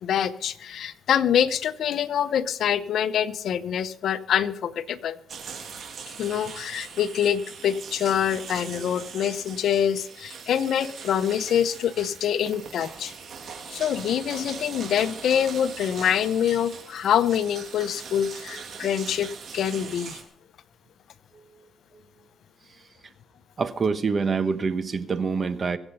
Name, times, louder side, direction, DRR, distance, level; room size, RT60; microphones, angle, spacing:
voice 1, 0.0-5.2 6.2-13.1 13.7-20.2, left 9 dB, 70° left, 14 dB, 0.8 m, -25 dB
sound 1, 5.3-20.2, right 6 dB, 60° right, 3.0 m, -41 dB
voice 2, 23.6-25.8, right 5 dB, 40° right, 12 dB, 1.2 m, -26 dB
24.0 x 8.0 x 5.5 m, 0.68 s
cardioid pair, 90°, 0 cm